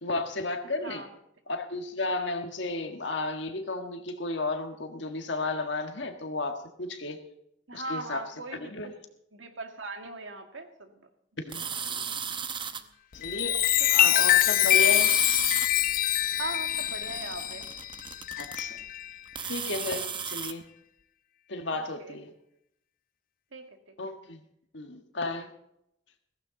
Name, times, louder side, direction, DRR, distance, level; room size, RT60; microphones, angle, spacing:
voice 1, 0.0-1.0 1.5-7.2 7.7-8.2 8.5-8.9 11.4-11.7 13.1-13.6 13.9-15.1 18.3-18.8 19.4-20.6 21.5-22.3 24.0-24.4 24.7-25.5, left 3 dB, 65° left, 5 dB, 1.7 m, -33 dB
voice 2, 0.6-1.1 7.7-8.7 9.3-11.1 11.9-12.1 12.7-12.9 13.8-13.9 14.2-14.3 16.3-17.7 21.7-22.2 23.5-24.2, right 2 dB, 80° right, 5 dB, 1.9 m, -40 dB
sound 1, 11.5-12.8 13.6-14.3 14.6-15.7 16.6-18.6 19.3-20.5, right 7 dB, 25° right, 0.8 m, -36 dB
Chime, 13.1-19.1 19.7-20.0, left 12 dB, 50° left, 0.6 m, -25 dB
15.5 x 15.0 x 4.0 m, 0.79 s
head